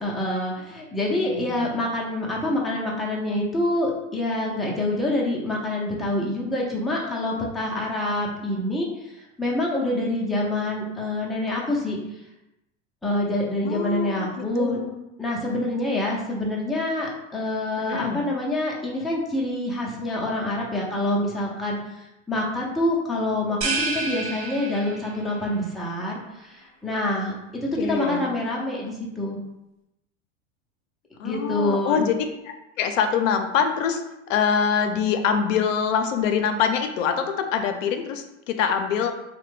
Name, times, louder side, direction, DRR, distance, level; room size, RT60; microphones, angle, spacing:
voice 1, 0.0-8.9 9.4-12.0 13.0-14.8 15.2-21.8 22.3-27.3 27.6-29.4 31.2-32.0, left 1 dB, ahead, -4 dB, 0.4 m, -26 dB
voice 2, 1.0-1.7 13.6-15.0 17.8-18.2 27.8-28.3 31.2-34.0 34.3-39.1, left 7 dB, 75° left, 6 dB, 0.5 m, -25 dB
sound 1, 23.6-25.3, right 3 dB, 50° right, 1.0 m, -29 dB
3.2 x 2.2 x 3.1 m, 0.93 s
hypercardioid pair, 100°, 39 cm